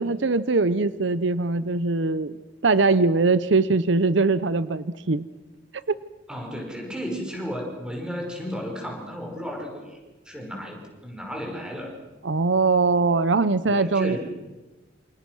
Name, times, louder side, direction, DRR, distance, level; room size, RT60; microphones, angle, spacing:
voice 1, 0.0-2.3 2.6-5.3 5.9-6.0 12.2-14.2, right 3 dB, 70° right, 15 dB, 0.8 m, -21 dB
voice 2, 6.3-10.0 10.3-12.0 13.6-14.2, equal, 5° right, 1 dB, 5.6 m, -33 dB
28.0 x 27.5 x 6.3 m, 1.2 s
head